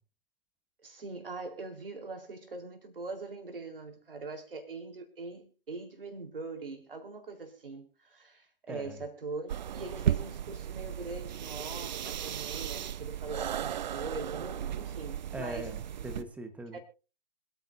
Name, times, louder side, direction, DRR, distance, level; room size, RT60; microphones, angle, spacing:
voice 1, 0.8-15.7 16.7-16.8, right 3 dB, 70° right, 4.1 m, -42 dB
voice 2, 8.7-9.0 15.3-16.8, right 1 dB, 5° right, 1.3 m, -41 dB
sound 1, 9.5-16.2, right 10 dB, 50° right, 1.0 m, -35 dB
26.5 x 9.3 x 2.7 m
figure-of-eight pair, 135°, 29 cm